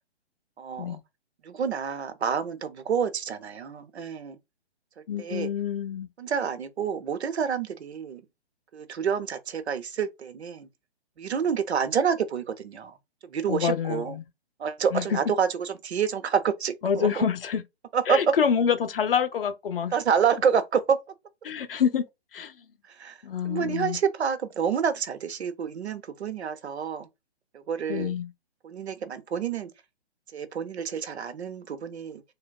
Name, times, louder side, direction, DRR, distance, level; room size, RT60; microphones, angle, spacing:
voice 1, 0.6-1.0 1.4-4.4 5.2-5.5 6.2-8.2 8.7-10.7 11.2-13.0 13.2-14.2 14.6-17.2 17.9-18.3 19.9-21.0 22.9-27.1 27.5-28.1 28.6-29.7 30.3-32.2, right 7 dB, 70° right, 0.6 m, -28 dB
voice 2, 5.1-6.1 13.5-14.2 14.9-15.2 16.8-17.6 18.1-19.9 21.4-22.0 22.3-22.5 23.2-24.0 27.9-28.3, left 7 dB, 55° left, 0.6 m, -27 dB
3.3 x 2.2 x 2.3 m
figure-of-eight pair, 140°, 34 cm